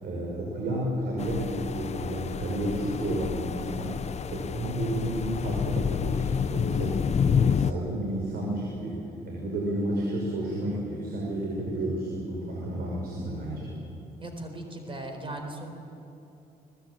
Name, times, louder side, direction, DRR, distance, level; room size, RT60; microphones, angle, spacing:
voice 1, 0.0-9.0 9.3-13.7, right 1 dB, 70° right, -3 dB, 6.1 m, -31 dB
sound 1, 1.2-7.7, left 7 dB, 40° left, 0.6 m, -29 dB
voice 2, 14.2-15.7, right 1 dB, 30° right, 4 dB, 4.2 m, -38 dB
23.0 x 20.0 x 8.9 m, 2.8 s
cardioid pair, 90°, 17 cm